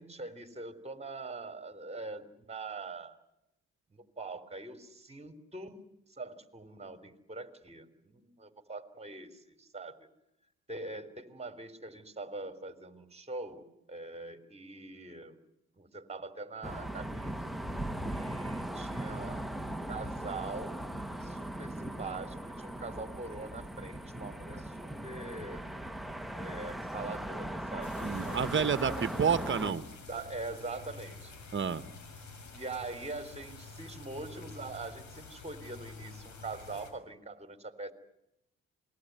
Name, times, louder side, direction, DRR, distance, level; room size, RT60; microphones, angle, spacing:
voice 1, 0.0-3.2 3.9-5.8 6.1-10.1 10.7-15.4 15.8-17.5 18.1-20.8 21.2-25.6 26.3-28.5 28.9-29.5 30.1-31.3 32.5-37.9, right 3 dB, 20° right, 11 dB, 3.5 m, -43 dB
sound 1, 16.6-29.7, right 1 dB, ahead, 1.5 m, -39 dB
sound 2, 27.8-36.9, left 4 dB, 70° left, 6.4 m, -49 dB
voice 2, 28.0-29.9 31.5-31.8, right 6 dB, 40° right, 13 dB, 1.6 m, -29 dB
27.5 x 20.5 x 9.4 m, 0.84 s
cardioid pair, 90°, 30 cm